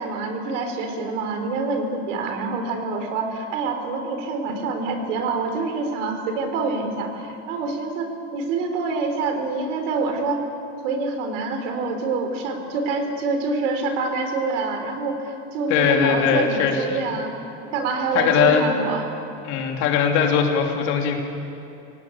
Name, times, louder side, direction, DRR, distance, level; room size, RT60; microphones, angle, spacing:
voice 1, 0.0-10.4 10.8-17.3 17.7-19.0, right 3 dB, 80° right, 5 dB, 4.1 m, -26 dB
voice 2, 15.7-17.0 18.1-18.7 19.4-21.2, left 7 dB, 50° left, 2 dB, 3.1 m, -20 dB
25.0 x 18.0 x 8.6 m, 2.8 s
supercardioid pair, 170°, 36 cm